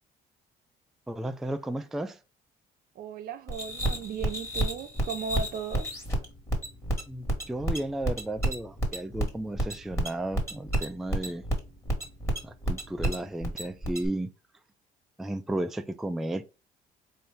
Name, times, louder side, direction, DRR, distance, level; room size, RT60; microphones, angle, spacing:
voice 1, 1.1-2.2 7.1-11.4 12.4-14.3 15.2-16.4, right 1 dB, ahead, 0.3 m, -33 dB
voice 2, 3.0-5.9, right 6 dB, 65° right, 0.7 m, -36 dB
sound 1, 3.5-14.1, right 1 dB, 15° left, 1.6 m, -30 dB
4.2 x 2.6 x 3.5 m
cardioid pair, 110°, 17 cm